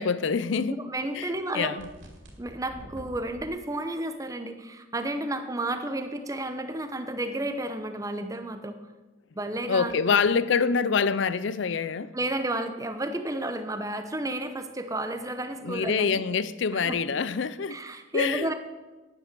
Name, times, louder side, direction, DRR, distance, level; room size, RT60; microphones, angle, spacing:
voice 1, 0.0-0.8 1.1-1.9 9.7-12.2 15.6-17.8 18.1-18.5, left 5 dB, 70° left, 0.5 m, -26 dB
voice 2, 0.7-1.8 2.4-8.8 9.4-10.3 12.1-16.3 16.8-17.0 17.7-18.5, right 1 dB, 15° right, 0.9 m, -32 dB
sound 1, 1.8-3.5, right 1 dB, 75° right, 2.5 m, -46 dB
10.0 x 9.2 x 6.8 m
head